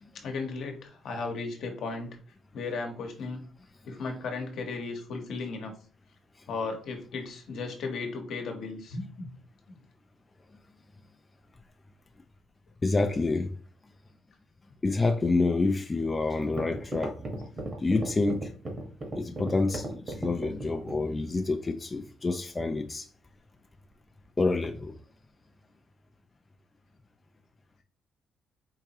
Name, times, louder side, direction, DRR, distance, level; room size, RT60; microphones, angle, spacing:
voice 1, 0.1-2.2 2.5-3.4 3.8-5.7 6.5-9.3, left 4 dB, 70° left, 1.0 m, -35 dB
voice 2, 12.8-13.5 14.8-17.2 17.8-18.5 19.1-23.1 24.4-24.9, left 3 dB, 25° left, 0.4 m, -28 dB
sound 1, 16.0-16.1 16.4-21.1, right 2 dB, 40° right, 1.3 m, -35 dB
4.7 x 2.8 x 2.9 m
cardioid pair, 90°, 0 cm